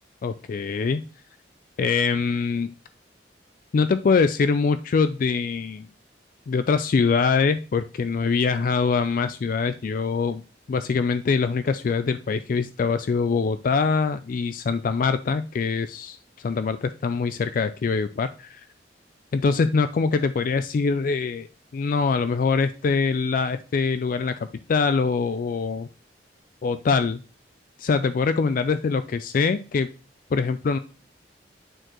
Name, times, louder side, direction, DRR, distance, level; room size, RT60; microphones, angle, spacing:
voice 1, 0.2-1.0 1.8-2.7 3.7-5.9 6.5-10.4 10.7-18.6 19.3-21.5 21.7-25.9 26.6-27.2 27.8-29.9 30.3-30.8, left 5 dB, 50° left, 11 dB, 0.3 m, -23 dB
8.8 x 4.6 x 3.0 m, 0.35 s
head